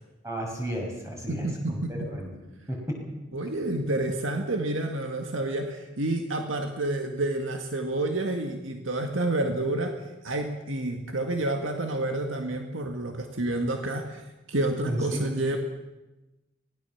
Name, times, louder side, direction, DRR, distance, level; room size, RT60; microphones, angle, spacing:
voice 1, 0.2-2.3 2.7-3.0 14.8-15.2, right 1 dB, 15° right, 0 dB, 6.0 m, -33 dB
voice 2, 1.3-2.1 3.3-14.2 14.5-15.6, right 2 dB, 85° right, 4 dB, 2.0 m, -29 dB
24.5 x 18.0 x 7.2 m, 1.0 s
head